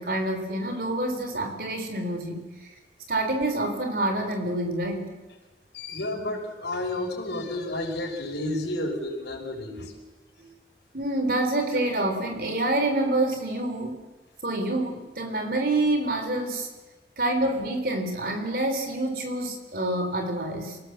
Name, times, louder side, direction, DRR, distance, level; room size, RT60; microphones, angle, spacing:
voice 1, 0.0-2.5 3.1-5.2 10.4-10.5 10.9-14.0 14.4-16.7 17.2-20.8, right 1 dB, 55° right, 5 dB, 4.0 m, -27 dB
voice 2, 5.7-9.9, left 1 dB, 80° left, 2 dB, 5.5 m, -31 dB
28.0 x 18.0 x 7.6 m, 1.2 s
head